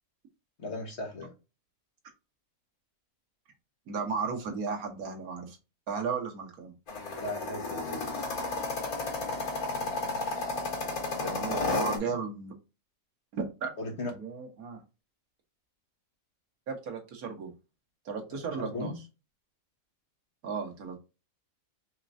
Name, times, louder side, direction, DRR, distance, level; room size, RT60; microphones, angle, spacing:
voice 1, 0.6-1.3 7.2-8.0 11.1-12.2 13.8-14.1 18.3-19.0, left 2 dB, 50° left, 1.4 m, -37 dB
voice 2, 3.9-5.6 5.9-6.7 11.2-12.5 13.3-13.7 14.1-14.8 16.7-17.5 18.0-18.9 20.4-21.0, right 5 dB, 85° right, 1.5 m, -35 dB
sound 1, 6.9-12.0, left 3 dB, 90° left, 1.9 m, -33 dB
4.4 x 3.2 x 2.6 m
omnidirectional pair, 1.5 m